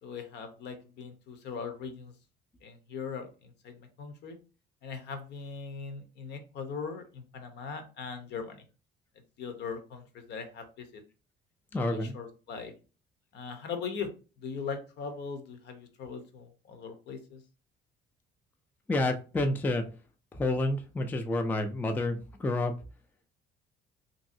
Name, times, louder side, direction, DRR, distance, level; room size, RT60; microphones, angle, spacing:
voice 1, 0.0-2.1 2.6-4.4 4.8-8.6 9.4-11.0 11.7-12.7 13.3-14.1 14.4-17.4, left 5 dB, 65° left, 7 dB, 0.7 m, -40 dB
voice 2, 11.7-12.1 18.9-19.8 20.3-22.7, left 2 dB, 10° left, 6 dB, 0.3 m, -29 dB
3.0 x 2.6 x 2.6 m, 0.34 s
cardioid pair, 130°, 19 cm